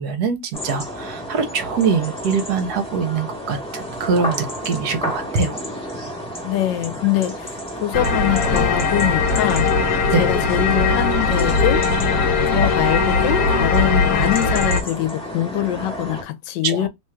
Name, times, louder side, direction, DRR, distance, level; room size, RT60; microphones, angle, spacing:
voice 1, 0.0-5.6 10.1-10.3 16.6-16.9, right 5 dB, 65° right, 1.2 m, -23 dB
sound 1, 0.5-16.2, equal, 5° left, 0.8 m, -31 dB
voice 2, 6.4-9.9 10.2-11.8 12.5-16.9, left 13 dB, 80° left, 1.3 m, -23 dB
sound 2, 7.9-14.8, left 4 dB, 60° left, 1.1 m, -19 dB
3.1 x 2.4 x 4.3 m
omnidirectional pair, 1.9 m